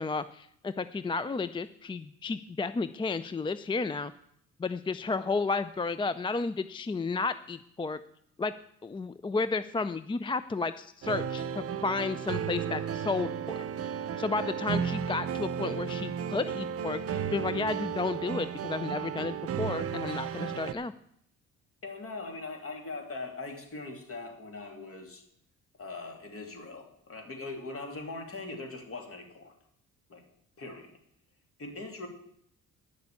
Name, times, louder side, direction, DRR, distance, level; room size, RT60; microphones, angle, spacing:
voice 1, 0.0-4.1 4.6-8.0 8.4-8.5 8.8-13.6 14.2-20.9, left 4 dB, 15° left, 14 dB, 0.4 m, -32 dB
sound 1, 11.0-20.7, right 8 dB, 50° right, 0.7 m, -34 dB
voice 2, 21.8-25.2 25.8-29.5 30.1-30.2 30.6-30.9 31.6-32.1, left 3 dB, 50° left, 4 dB, 2.9 m, -41 dB
9.7 x 6.8 x 8.2 m, 0.70 s
cardioid pair, 90°, 30 cm